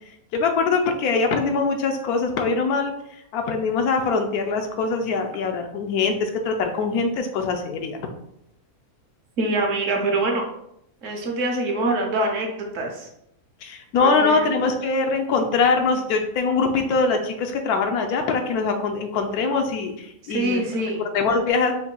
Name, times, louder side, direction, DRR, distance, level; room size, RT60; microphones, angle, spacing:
voice 1, 0.3-2.9 3.3-8.0 13.6-20.6 21.1-21.7, left 4 dB, 85° left, 4 dB, 1.1 m, -23 dB
voice 2, 9.4-10.4 11.0-13.1 13.9-14.5 20.3-21.1, right 2 dB, 65° right, 2 dB, 1.1 m, -24 dB
4.0 x 2.6 x 3.7 m, 0.76 s
omnidirectional pair, 1.5 m